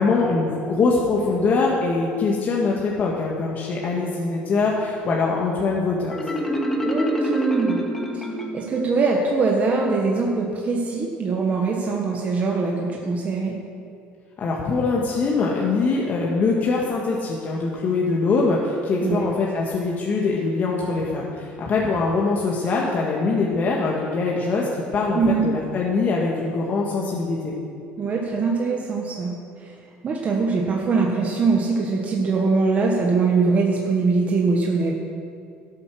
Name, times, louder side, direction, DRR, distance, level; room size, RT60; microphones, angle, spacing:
voice 1, 0.0-6.1 14.4-27.5, left 3 dB, 45° left, -3 dB, 1.6 m, -23 dB
Marimba xylophone, 6.1-8.9, right 1 dB, 10° left, 1.8 m, -25 dB
voice 2, 6.8-7.8 8.5-13.6 19.0-19.3 25.1-25.5 28.0-29.4 29.6-29.7 30.0-34.9, right 4 dB, 35° right, 0 dB, 1.4 m, -22 dB
12.5 x 8.4 x 6.3 m, 2.4 s
cardioid pair, 105°, 4 cm